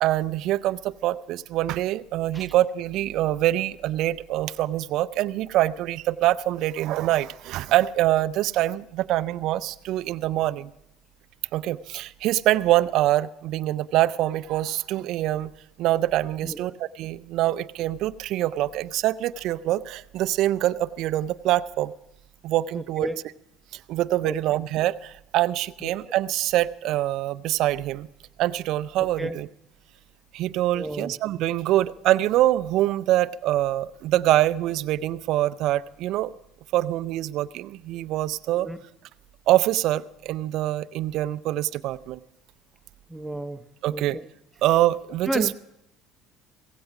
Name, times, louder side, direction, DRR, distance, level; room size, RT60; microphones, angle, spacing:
voice 1, 0.0-10.7 11.5-15.5 15.8-21.9 22.4-23.1 23.9-28.1 28.4-29.5 30.3-36.3 36.7-38.7 39.5-42.2 43.8-44.2 44.6-45.5, right 14 dB, 65° right, 17 dB, 0.5 m, -24 dB
voice 2, 22.7-23.2 24.2-24.3 25.8-25.9 29.0-29.4 30.7-31.2 38.5-38.8 43.1-44.2 45.3-45.5, right 1 dB, 5° right, 9 dB, 1.0 m, -32 dB
16.5 x 16.0 x 4.9 m, 0.81 s
hypercardioid pair, 75°, 0 cm